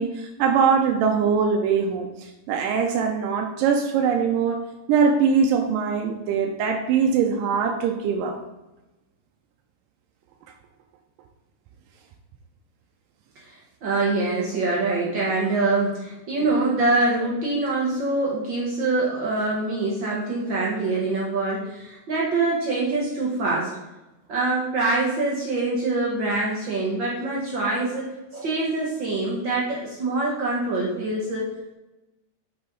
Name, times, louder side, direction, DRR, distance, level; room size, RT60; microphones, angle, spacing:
voice 1, 0.0-8.4 16.4-16.7, right 6 dB, 90° right, 3 dB, 2.3 m, -22 dB
voice 2, 13.4-23.7 24.3-28.0 28.3-31.5, right 2 dB, 70° right, -5 dB, 1.1 m, -24 dB
6.8 x 5.6 x 3.8 m, 1.0 s
omnidirectional pair, 3.9 m